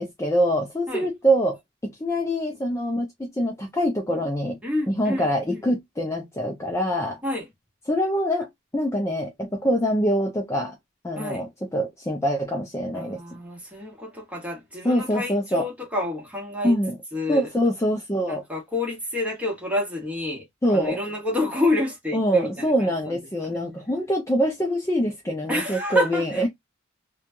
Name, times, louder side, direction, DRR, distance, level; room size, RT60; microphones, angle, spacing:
voice 1, 0.0-1.6 1.8-4.6 4.9-7.2 7.9-10.7 11.0-13.2 14.8-15.7 16.6-17.0 17.3-18.4 20.6-21.0 22.1-26.5, equal, 15° left, 0.5 m, -24 dB
voice 2, 4.6-5.6 7.2-7.4 11.2-11.4 12.9-16.8 17.1-17.5 18.3-23.2 23.4-23.5 25.5-26.5, left 2 dB, 5° right, 1.2 m, -29 dB
3.0 x 2.2 x 2.5 m
head